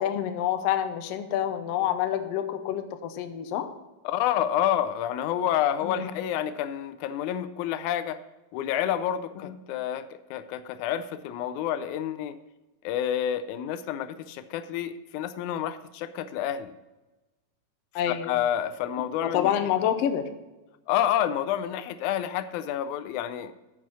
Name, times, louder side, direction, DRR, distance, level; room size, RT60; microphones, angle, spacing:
voice 1, 0.0-3.7 5.8-6.1 9.4-9.5 17.9-18.3 19.2-20.3, left 10 dB, 70° left, 8 dB, 1.6 m, -27 dB
voice 2, 4.1-8.2 8.5-12.4 12.8-16.7 18.1-19.7 20.9-23.5, left 10 dB, 85° left, 13 dB, 2.0 m, -29 dB
9.3 x 6.1 x 5.5 m, 1.1 s
omnidirectional pair, 3.4 m